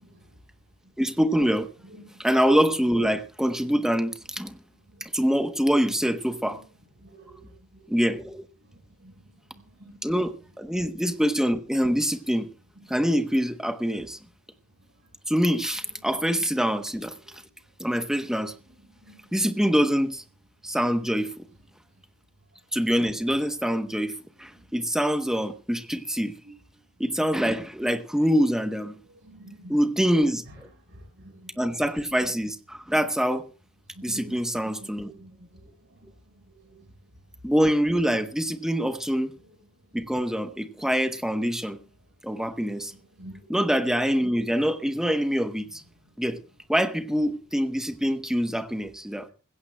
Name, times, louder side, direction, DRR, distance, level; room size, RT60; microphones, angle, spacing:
voice 1, 1.0-1.7 2.2-4.5 5.0-6.6 7.9-8.4 10.0-12.5 12.9-14.2 15.3-17.1 17.8-18.5 19.3-20.2 20.6-21.3 22.7-24.1 24.4-26.3 27.0-29.0 29.7-30.4 31.6-33.5 34.0-35.1 37.4-39.3 39.9-41.8 42.2-42.9 43.5-45.8 46.2-46.4 46.7-49.3, equal, ahead, 0.9 m, -25 dB
voice 2, 7.0-7.8 9.0-9.1 9.9-10.0 19.0-19.1 29.2-29.7 30.9-31.3 33.9-34.3 34.6-34.7 35.0-35.5 36.6-36.7 43.2-43.4, right 1 dB, 55° right, 5.0 m, -46 dB
21.0 x 16.0 x 2.2 m
head